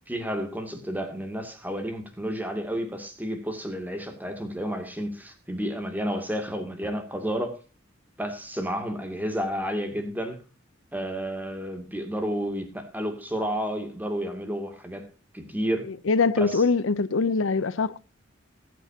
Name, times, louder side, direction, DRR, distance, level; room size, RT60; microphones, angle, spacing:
voice 1, 0.1-7.6 8.2-10.4 10.9-15.1 15.3-15.9 16.4-16.6, equal, 10° right, 2.4 m, -31 dB
voice 2, 16.1-18.0, left 4 dB, 90° left, 0.6 m, -23 dB
20.0 x 8.4 x 2.8 m
head